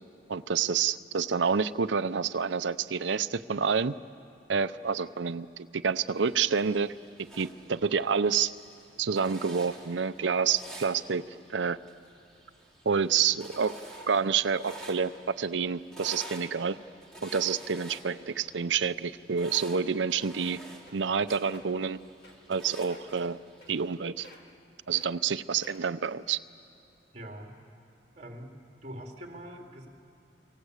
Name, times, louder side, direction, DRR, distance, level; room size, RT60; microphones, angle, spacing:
voice 1, 0.3-3.9 4.5-6.9 7.4-8.5 9.0-11.2 11.5-11.8 12.9-13.7 14.1-16.8 17.2-20.6 20.9-22.0 22.5-23.4 23.7-24.3 24.9-26.4, right 6 dB, 90° right, 12 dB, 0.6 m, -28 dB
sound 1, 6.0-24.0, right 1 dB, 5° left, 3.4 m, -49 dB
sound 2, 20.2-20.5 20.9-21.1 21.4-21.6 22.2-22.6 22.9-23.1 23.6-24.0 24.2-24.6 24.9-25.1 25.6-26.0 26.6-26.7, left 1 dB, 60° left, 2.8 m, -52 dB
voice 2, 27.1-27.5 28.1-28.5 28.8-29.9, equal, 40° right, 1 dB, 3.1 m, -43 dB
29.5 x 24.5 x 8.2 m, 2.6 s
head